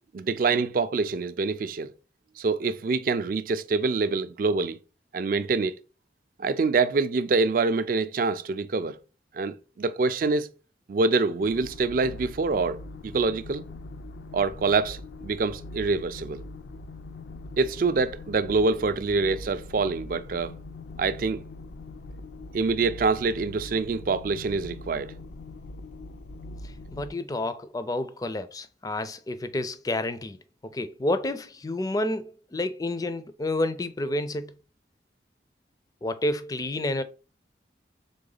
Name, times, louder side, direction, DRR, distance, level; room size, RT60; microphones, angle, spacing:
voice 1, 0.1-1.9 2.4-4.8 5.1-5.8 6.4-9.0 9.3-10.5 10.9-13.6 14.3-16.4 17.6-20.6 21.0-21.4 22.5-25.1, right 4 dB, 50° right, 0.4 m, -25 dB
sound 1, 11.4-27.1, left 2 dB, 80° left, 0.4 m, -42 dB
voice 2, 26.9-30.4 30.6-34.5 36.0-37.0, left 1 dB, 20° left, 0.4 m, -29 dB
3.8 x 3.5 x 3.8 m
head